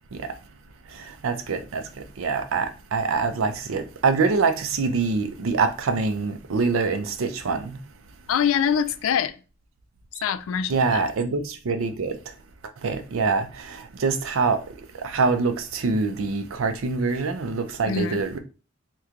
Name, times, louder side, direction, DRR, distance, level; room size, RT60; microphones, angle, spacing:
voice 1, 0.9-1.8 2.2-7.8 10.7-12.2 12.8-14.6 15.0-18.4, right 4 dB, 85° right, 0.5 m, -25 dB
voice 2, 8.3-9.4 10.2-11.1 17.8-18.2, left 7 dB, 80° left, 0.3 m, -24 dB
3.0 x 2.2 x 3.6 m
head